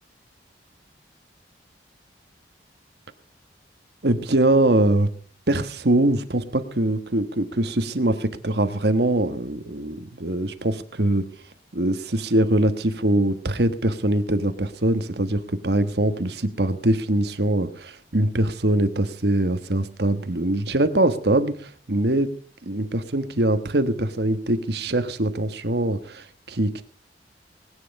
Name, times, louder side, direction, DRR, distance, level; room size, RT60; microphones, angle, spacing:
voice 1, 4.0-5.1 5.5-11.2 11.7-22.3 22.6-26.8, right 1 dB, 65° right, 10 dB, 1.4 m, -23 dB
20.5 x 9.6 x 5.4 m, 0.43 s
head